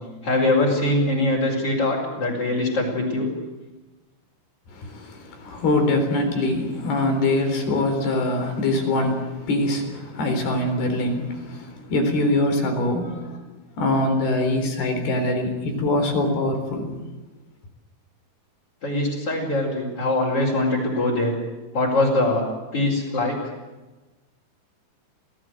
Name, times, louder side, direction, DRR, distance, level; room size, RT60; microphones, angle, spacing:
voice 1, 0.2-3.3 18.8-21.4 21.7-22.5 22.7-23.4, left 2 dB, 35° left, -1 dB, 5.4 m, -22 dB
voice 2, 4.7-13.4 13.8-16.9, left 2 dB, 80° left, 5 dB, 6.0 m, -23 dB
27.5 x 18.0 x 7.8 m, 1.2 s
omnidirectional pair, 4.5 m